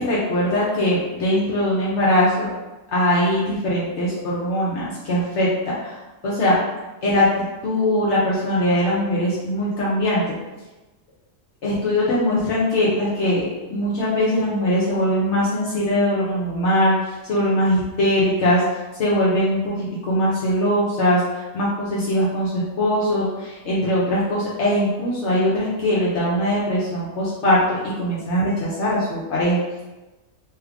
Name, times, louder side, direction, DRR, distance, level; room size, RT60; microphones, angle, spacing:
voice 1, 0.0-2.5 2.9-6.0 6.2-6.6 7.0-10.4 11.6-18.6 19.0-29.8, left 1 dB, 65° left, -7 dB, 0.9 m, -21 dB
3.0 x 2.4 x 3.4 m, 1.1 s
omnidirectional pair, 1.4 m